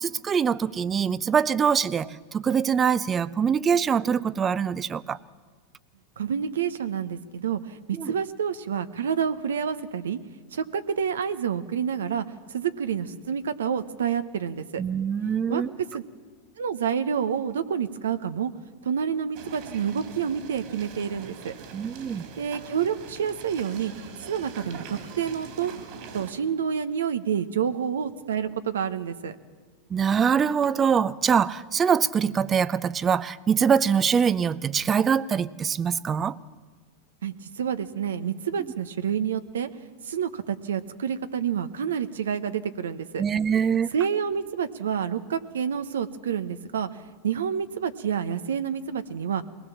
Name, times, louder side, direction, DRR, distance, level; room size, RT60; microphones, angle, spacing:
voice 1, 0.0-5.2 8.0-8.1 14.8-15.7 21.7-22.2 29.9-36.4 43.2-43.9, right 7 dB, 25° right, 19 dB, 0.6 m, -24 dB
voice 2, 6.2-10.2 10.5-12.2 12.5-14.8 15.5-15.6 15.9-16.0 16.6-18.5 18.8-21.5 22.4-25.7 26.1-29.4 37.2-39.7 40.0-43.2 43.9-46.9 47.2-49.4, right 7 dB, 80° right, 11 dB, 1.0 m, -28 dB
sound 1, 19.3-26.3, right 5 dB, 55° right, 3.3 m, -42 dB
21.5 x 18.0 x 7.2 m, 1.5 s
hypercardioid pair, 100°, 0 cm